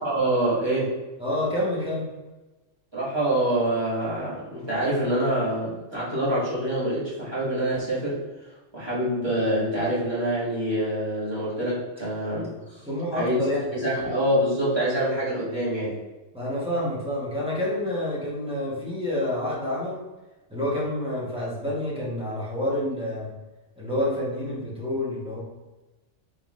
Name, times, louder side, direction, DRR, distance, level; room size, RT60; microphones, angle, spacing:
voice 1, 0.0-0.9 2.9-12.9 13.1-13.4 13.7-16.0, right 1 dB, 20° right, -9 dB, 1.5 m, -26 dB
voice 2, 1.2-2.1 12.9-13.7 16.3-20.0 20.5-23.3 23.8-25.4, left 1 dB, 5° right, -7 dB, 1.0 m, -28 dB
3.9 x 3.6 x 2.4 m, 1.1 s
omnidirectional pair, 1.3 m